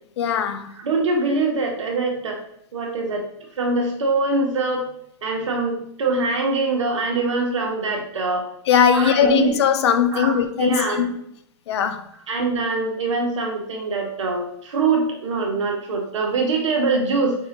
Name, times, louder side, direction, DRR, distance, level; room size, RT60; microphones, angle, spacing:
voice 1, 0.2-0.7 8.7-11.1 11.7-12.0, left 8 dB, 65° left, 0.5 m, -19 dB
voice 2, 0.7-2.4 2.7-3.2 3.6-4.9 5.2-8.4 8.9-9.7 10.1-11.1 12.3-17.4, right 3 dB, 90° right, 1.3 m, -23 dB
5.4 x 2.7 x 2.9 m
hypercardioid pair, 155°, 15 cm